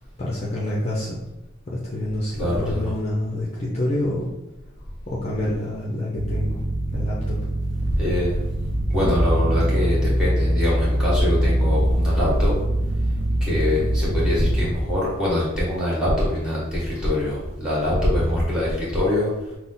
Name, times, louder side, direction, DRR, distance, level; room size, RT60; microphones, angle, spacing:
voice 1, 0.2-1.2 1.7-4.3 5.1-6.6 6.9-7.4, left 1 dB, 30° left, -5 dB, 0.7 m, -27 dB
voice 2, 2.4-2.8 8.0-8.5 8.9-12.5 13.4-19.5, left 1 dB, 5° right, -7 dB, 1.6 m, -23 dB
sound 1, 6.2-14.7, equal, 55° right, 0.7 m, -23 dB
6.2 x 2.1 x 4.0 m, 0.97 s
head